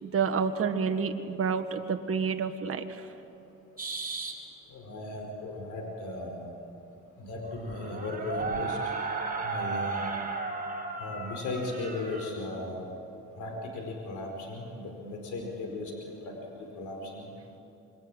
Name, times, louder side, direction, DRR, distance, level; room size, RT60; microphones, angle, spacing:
voice 1, 0.0-3.1, right 6 dB, 50° right, 6 dB, 1.7 m, -29 dB
sound 1, 3.8-4.3 7.3-12.3, right 4 dB, 30° right, 6.5 m, -34 dB
voice 2, 4.7-6.5 7.2-8.8 9.4-10.1 11.0-12.8 13.4-17.3, left 2 dB, 75° left, 2 dB, 5.0 m, -37 dB
26.0 x 22.5 x 9.1 m, 2.8 s
cardioid pair, 90°, 30 cm